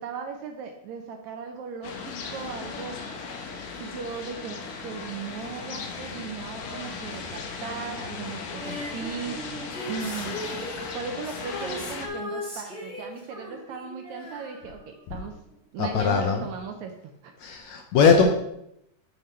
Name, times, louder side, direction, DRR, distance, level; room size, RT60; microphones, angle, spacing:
voice 1, 0.0-3.0 3.8-10.4 10.9-15.3 15.7-17.3, right 6 dB, 75° right, 4 dB, 1.8 m, -37 dB
sound 1, 1.8-12.1, left 4 dB, 90° left, 2.6 m, -37 dB
Female singing, 8.6-15.2 15.5-15.6, equal, ahead, 2.3 m, -38 dB
voice 2, 15.8-16.5 17.4-18.3, left 5 dB, 75° left, 3 dB, 1.7 m, -20 dB
9.5 x 5.1 x 4.3 m, 0.79 s
omnidirectional pair, 3.8 m